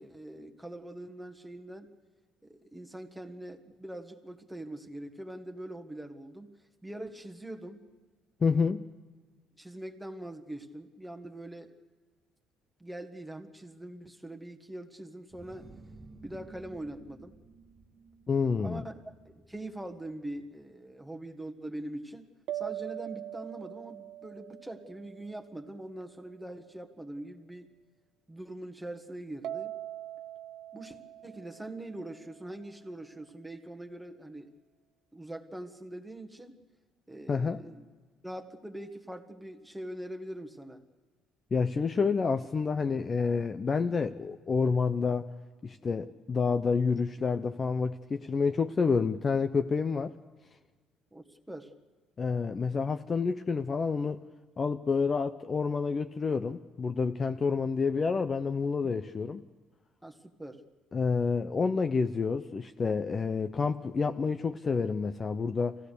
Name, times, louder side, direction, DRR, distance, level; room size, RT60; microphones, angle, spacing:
voice 1, 0.0-1.9 2.4-6.5 6.8-7.8 9.6-11.7 12.8-15.7 16.2-17.3 18.6-18.9 19.2-27.7 28.3-29.7 30.7-34.5 35.1-36.5 37.1-37.8 38.2-40.8 51.1-51.7 58.8-59.0 60.0-60.6, right 1 dB, 5° right, 4 dB, 1.5 m, -43 dB
voice 2, 8.4-8.9 18.3-18.8 37.3-37.6 41.5-45.3 45.6-50.1 52.2-54.2 54.6-59.4 60.9-65.8, left 5 dB, 30° left, 8 dB, 0.6 m, -29 dB
sound 1, 15.3-20.8, right 3 dB, 30° right, 1.5 m, -54 dB
sound 2, 22.5-26.0 29.4-32.5, right 12 dB, 60° right, 0.6 m, -42 dB
25.5 x 16.5 x 6.7 m, 1.4 s
cardioid pair, 125°, 0 cm